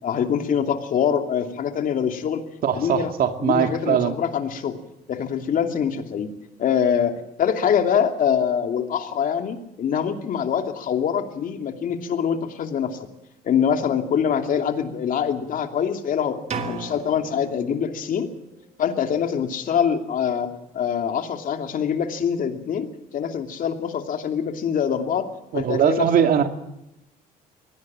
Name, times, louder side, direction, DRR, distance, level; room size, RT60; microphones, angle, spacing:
voice 1, 0.0-2.4 2.7-3.1 3.4-4.8 5.1-6.3 6.6-13.0 13.4-18.3 18.8-25.3 25.5-26.1, left 8 dB, 55° left, 6 dB, 2.8 m, -24 dB
voice 2, 2.6-4.2 25.5-26.5, right 8 dB, 60° right, 7 dB, 2.4 m, -21 dB
sound 1, 16.5-18.4, right 4 dB, 40° right, 2.6 m, -35 dB
23.0 x 17.5 x 7.5 m, 0.86 s
cardioid pair, 110°, 17 cm